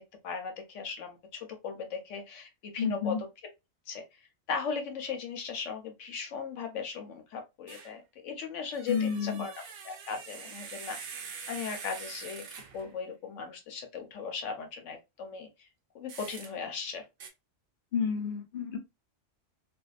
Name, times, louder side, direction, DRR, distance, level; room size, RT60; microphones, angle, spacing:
voice 1, 0.2-3.2 3.9-4.0 4.5-9.5 9.8-12.4 12.7-15.5 15.9-17.0, left 5 dB, 85° left, 1.0 m, -37 dB
voice 2, 2.8-3.2 8.9-9.5 17.9-18.8, left 6 dB, 55° left, 0.7 m, -30 dB
sound 1, 7.7-8.0 8.7-12.9 16.1-16.5 17.2-17.3, right 6 dB, 60° right, 0.7 m, -44 dB
2.6 x 2.2 x 2.3 m
omnidirectional pair, 1.2 m